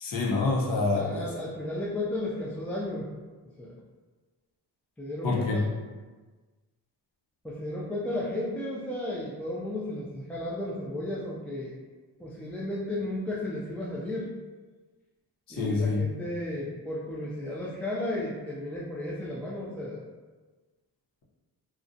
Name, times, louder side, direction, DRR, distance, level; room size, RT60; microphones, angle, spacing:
voice 1, 0.0-1.3 5.2-5.7 15.5-16.0, left 3 dB, 55° left, -3 dB, 0.7 m, -26 dB
voice 2, 0.9-3.1 3.6-3.8 5.0-5.7 7.4-11.7 12.2-14.3 15.5-20.0, left 1 dB, 5° left, -7 dB, 0.3 m, -34 dB
2.3 x 2.1 x 2.5 m, 1.3 s
cardioid pair, 60°, 42 cm